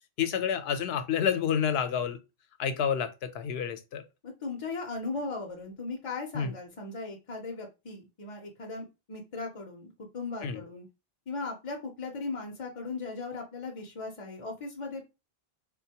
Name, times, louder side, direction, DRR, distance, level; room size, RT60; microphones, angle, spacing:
voice 1, 0.2-2.2 2.6-4.0 6.3-6.5 10.4-10.6, left 8 dB, 80° left, 0.8 m, -29 dB
voice 2, 4.2-10.9 11.3-15.0, left 3 dB, 45° left, 0.5 m, -38 dB
3.9 x 2.2 x 2.8 m
omnidirectional pair, 1.0 m